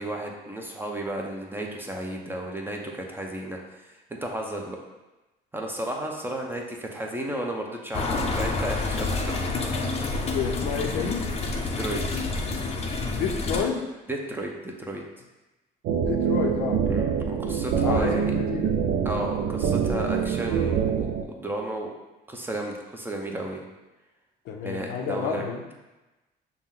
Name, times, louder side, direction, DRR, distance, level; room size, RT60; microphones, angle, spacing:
voice 1, 0.0-4.8 5.5-9.9 11.8-12.0 14.1-15.0 16.9-18.3 19.0-21.9 22.3-23.7 24.6-25.4, right 1 dB, 10° right, 1 dB, 0.6 m, -33 dB
sound 1, 7.9-13.6, left 3 dB, 35° left, 0.6 m, -28 dB
voice 2, 10.3-11.2 13.1-13.8 16.0-17.0 17.8-18.8 24.5-25.6, left 6 dB, 85° left, 2 dB, 0.6 m, -29 dB
sound 2, 15.8-21.2, right 7 dB, 75° right, 0.4 m, -25 dB
5.8 x 2.1 x 3.7 m, 1.1 s
cardioid pair, 110°, 17 cm